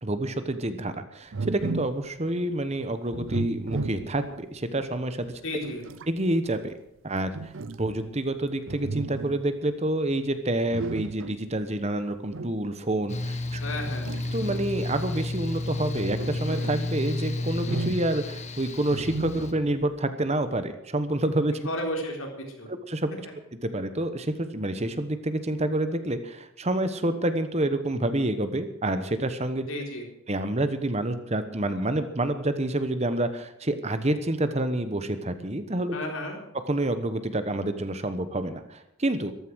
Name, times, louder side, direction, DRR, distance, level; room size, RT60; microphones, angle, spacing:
voice 1, 0.0-5.4 6.1-6.7 7.0-7.5 7.8-13.6 14.3-21.6 22.9-23.1 23.6-29.7 30.3-36.0 36.7-39.3, right 1 dB, 30° right, 10 dB, 1.1 m, -28 dB
sound 1, 1.3-2.1 3.1-4.4 5.2-6.1 7.3-8.3 8.7-9.5 10.7-11.5 12.3-12.6 13.7-14.9 15.7-16.9 17.5-18.3 18.9-19.8, right 3 dB, 65° right, 0.6 m, -35 dB
voice 2, 5.4-5.8 13.6-14.1 21.6-22.7 29.7-30.1 35.9-36.4, left 1 dB, 80° left, 1 dB, 4.1 m, -33 dB
Mechanical fan, 13.1-19.5, left 2 dB, 35° left, 1.3 m, -32 dB
14.0 x 13.5 x 6.3 m, 0.81 s
head